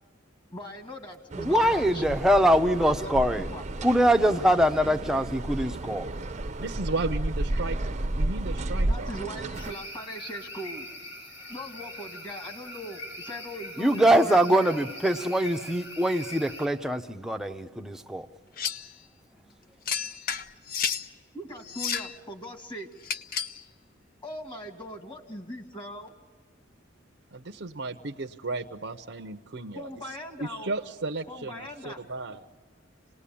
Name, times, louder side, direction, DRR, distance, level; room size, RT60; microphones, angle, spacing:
voice 1, 0.5-3.2 3.5-3.6 8.9-10.9 11.5-14.7 19.4-19.5 20.3-20.4 21.3-22.9 24.2-26.1 29.7-30.7 31.3-32.0, equal, 25° left, 2.2 m, -40 dB
sound 1, 1.3-9.7, right 1 dB, 35° right, 0.7 m, -32 dB
voice 2, 1.4-3.5 3.8-6.1 13.8-18.3, equal, 5° right, 0.7 m, -23 dB
voice 3, 6.6-9.1 27.3-29.9 30.4-32.4, right 3 dB, 65° right, 0.8 m, -34 dB
sound 2, 9.5-16.7, left 1 dB, 80° left, 5.4 m, -42 dB
sound 3, 18.6-18.9 19.9-21.1 21.7-22.2 23.0-23.6, left 7 dB, 50° left, 0.7 m, -31 dB
27.0 x 19.5 x 8.6 m
head